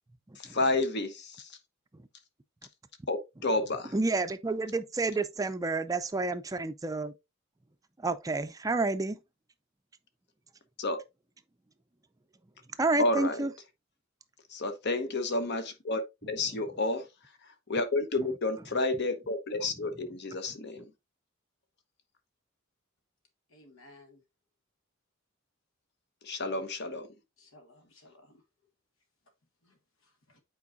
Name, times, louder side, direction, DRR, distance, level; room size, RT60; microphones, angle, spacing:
voice 1, 0.4-1.5 3.1-3.9 10.8-11.0 13.0-13.5 14.5-17.0 17.7-20.9 26.2-27.1, left 2 dB, 55° left, 1.1 m, -30 dB
voice 2, 3.9-7.1 8.0-9.2 12.8-13.5, right 3 dB, 15° right, 0.4 m, -29 dB
voice 3, 23.5-24.2 27.4-28.4 29.6-29.8 30.3-30.4, left 2 dB, 80° left, 1.7 m, -57 dB
8.4 x 4.6 x 2.6 m
head